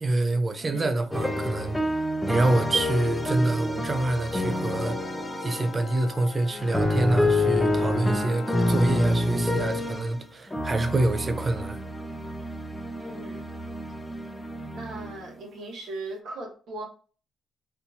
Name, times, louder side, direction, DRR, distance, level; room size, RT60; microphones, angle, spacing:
voice 1, 0.0-1.9 2.3-5.0 5.4-11.8, right 2 dB, 30° right, 0.5 m, -26 dB
voice 2, 0.6-1.0 13.0-13.5 14.7-16.9, right 2 dB, 70° right, 1.4 m, -38 dB
sound 1, 1.1-6.0 6.5-10.2 10.5-15.3, left 1 dB, 10° left, 0.6 m, -28 dB
sound 2, 4.1-9.2, left 5 dB, 70° left, 0.7 m, -40 dB
4.2 x 2.7 x 2.7 m
cardioid pair, 90°, 0 cm